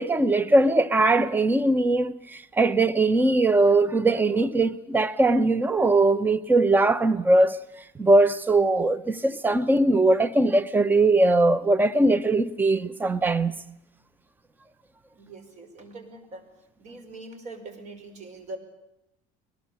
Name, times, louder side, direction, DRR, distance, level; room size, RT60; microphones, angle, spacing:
voice 1, 0.0-7.6 8.0-13.5, right 2 dB, 10° right, 0.9 m, -21 dB
voice 2, 15.1-16.4 16.8-18.6, right 2 dB, 40° right, 5.7 m, -42 dB
23.0 x 21.0 x 8.4 m
cardioid pair, 130°, 17 cm